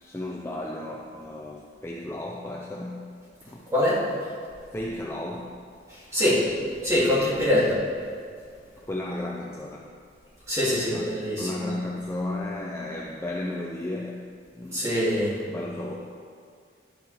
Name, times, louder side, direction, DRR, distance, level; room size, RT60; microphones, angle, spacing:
voice 1, 0.0-3.0 3.4-3.6 4.7-5.5 7.5-7.7 8.8-9.9 10.9-14.2 14.5-14.8 15.5-15.9, left 1 dB, 15° left, -2 dB, 0.5 m, -34 dB
voice 2, 3.7-4.0 5.9-6.4 6.8-7.6 10.5-11.6 14.7-15.4, left 1 dB, 15° right, -9 dB, 2.8 m, -24 dB
11.0 x 10.5 x 3.5 m, 2.2 s
head